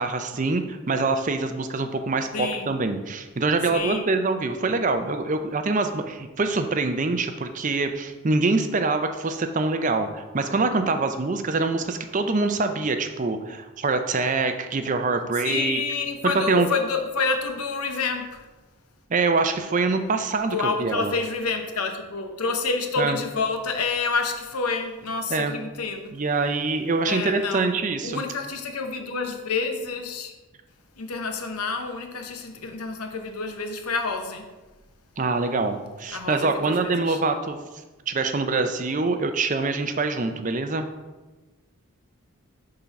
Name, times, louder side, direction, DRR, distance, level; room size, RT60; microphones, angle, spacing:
voice 1, 0.0-15.8 16.2-16.7 19.1-21.1 23.0-23.2 25.3-25.5 26.1-28.2 35.2-37.6 38.1-40.9, right 3 dB, 35° right, 7 dB, 0.5 m, -25 dB
voice 2, 2.3-2.7 3.7-4.1 15.4-18.5 20.5-26.1 27.1-27.7 28.0-30.3 31.0-34.5 36.1-37.2, left 4 dB, 85° left, 5 dB, 0.9 m, -28 dB
7.1 x 3.8 x 5.8 m, 1.2 s
head